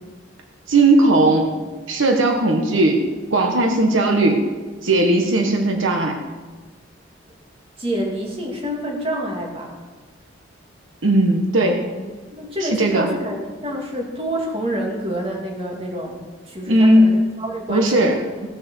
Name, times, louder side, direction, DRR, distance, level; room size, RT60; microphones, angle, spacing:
voice 1, 0.7-1.5 1.9-3.0 3.3-4.5 4.8-6.2 11.0-11.9 12.6-13.1 16.7-17.2 17.7-18.2, right 1 dB, 80° right, 3 dB, 1.3 m, -17 dB
voice 2, 7.8-9.7 12.3-18.2, equal, 30° right, -1 dB, 2.3 m, -28 dB
17.0 x 6.6 x 6.3 m, 1.3 s
head